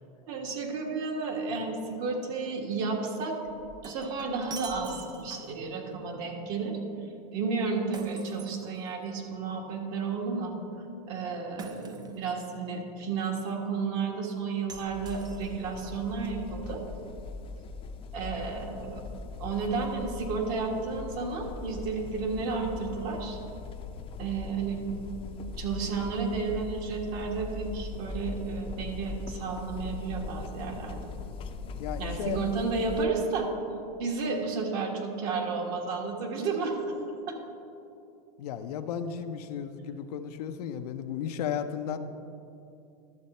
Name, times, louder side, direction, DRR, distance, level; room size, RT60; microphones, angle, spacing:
voice 1, 0.3-3.4 3.8-6.8 7.3-10.5 11.1-16.8 18.1-19.0 19.4-23.4 24.2-24.8 25.6-31.1 32.0-33.5 34.0-37.0 37.3-37.4, right 4 dB, 60° right, 1 dB, 1.6 m, -32 dB
Shatter, 3.4-5.7 7.9-9.2 11.6-12.4 14.7-15.8, right 5 dB, 20° right, 0.5 m, -45 dB
sound 1, 14.9-33.1, left 4 dB, 30° left, 0.6 m, -40 dB
voice 2, 31.8-32.4 38.4-42.0, left 8 dB, 80° left, 8 dB, 0.7 m, -34 dB
12.0 x 6.8 x 4.2 m, 2.7 s
supercardioid pair, 120°, 20 cm